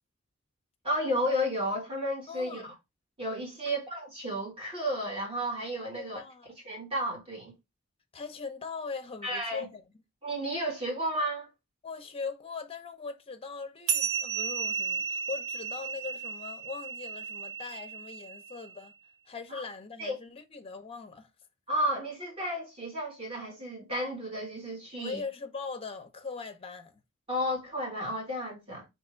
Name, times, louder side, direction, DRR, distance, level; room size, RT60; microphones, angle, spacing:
voice 1, 0.8-2.7 3.2-6.2 6.6-7.5 9.2-9.7 10.2-11.5 19.5-19.6 20.0-20.2 21.7-25.2 27.3-28.9, equal, 30° right, 2.2 m, -32 dB
voice 2, 2.3-2.7 3.7-3.8 6.0-6.5 8.1-9.8 11.8-18.9 19.3-21.3 25.0-26.9, left 4 dB, 30° left, 0.7 m, -40 dB
sound 1, 13.9-18.7, right 6 dB, 80° right, 0.8 m, -34 dB
3.5 x 3.0 x 4.3 m
head